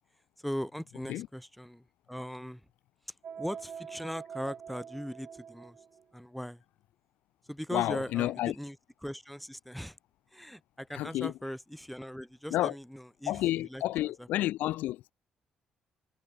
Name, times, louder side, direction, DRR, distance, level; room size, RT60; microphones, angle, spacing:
voice 1, 0.4-2.7 3.1-5.8 6.1-6.6 7.5-8.8 9.0-10.0 10.3-13.8 14.2-14.5, equal, ahead, 5.8 m, -39 dB
sound 1, 3.2-6.0, right 7 dB, 55° right, 1.8 m, -45 dB
voice 2, 7.7-8.5 10.9-11.3 12.5-12.7 13.3-15.1, left 15 dB, 80° left, 2.5 m, -30 dB
supercardioid pair, 60°, 3 cm